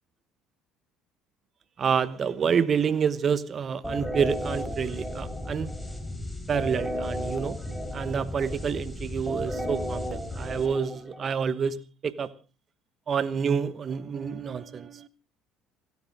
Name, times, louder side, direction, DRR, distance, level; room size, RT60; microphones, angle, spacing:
voice 1, 1.8-5.7 6.5-7.6 7.9-12.3 13.1-15.1, right 6 dB, 40° right, 1.1 m, -28 dB
sound 1, 3.8-11.5, equal, 5° left, 4.1 m, -34 dB
29.5 x 10.5 x 3.7 m
figure-of-eight pair, 55°, 0 cm